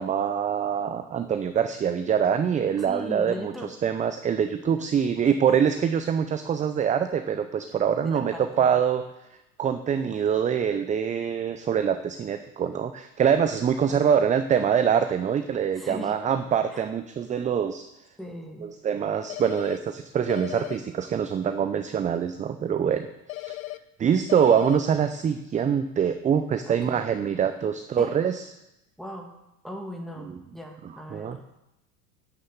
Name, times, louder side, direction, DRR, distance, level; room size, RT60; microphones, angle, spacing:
voice 1, 0.0-9.0 9.6-17.9 18.8-23.1 23.3-23.6 24.0-28.4 31.1-31.4, right 8 dB, 15° right, 9 dB, 0.5 m, -24 dB
voice 2, 2.8-3.7 7.7-8.8 13.9-14.2 15.7-16.1 16.7-16.9 18.2-18.7 24.5-24.6 26.6-27.0 28.0-28.2 29.0-29.3 29.6-31.6, left 1 dB, ahead, 2 dB, 2.1 m, -39 dB
Phone Ring, 19.3-19.8 20.3-20.8 23.3-23.8 24.3-24.8, left 18 dB, 65° left, 0.8 m, -36 dB
11.0 x 6.7 x 7.1 m, 0.91 s
hypercardioid pair, 85°, 45 cm